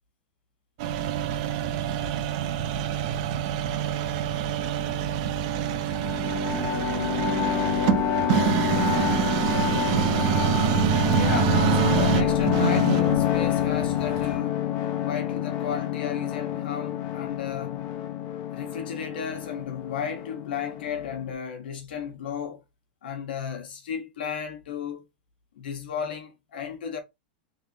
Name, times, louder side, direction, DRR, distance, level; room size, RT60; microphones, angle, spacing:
sound 1, 0.8-14.4, right 9 dB, 45° right, 0.6 m, -26 dB
sound 2, 5.9-21.3, left 10 dB, 40° left, 0.8 m, -27 dB
voice 1, 11.1-14.7 15.0-17.9 18.5-22.6 23.0-25.1 25.5-27.0, left 7 dB, 85° left, 1.3 m, -34 dB
3.5 x 3.3 x 2.9 m
supercardioid pair, 155°, 5 cm